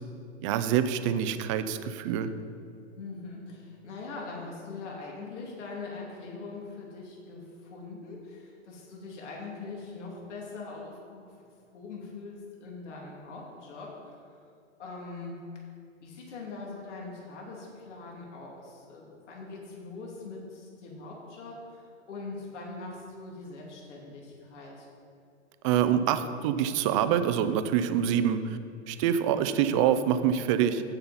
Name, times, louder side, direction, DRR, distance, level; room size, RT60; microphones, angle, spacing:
voice 1, 0.4-2.3 25.6-28.6 28.9-30.8, right 9 dB, 25° right, 10 dB, 0.4 m, -26 dB
voice 2, 3.0-14.2 14.8-15.3 16.0-24.9, left 3 dB, 70° left, -2 dB, 2.5 m, -42 dB
15.5 x 5.6 x 4.1 m, 2.5 s
hypercardioid pair, 140°, 37 cm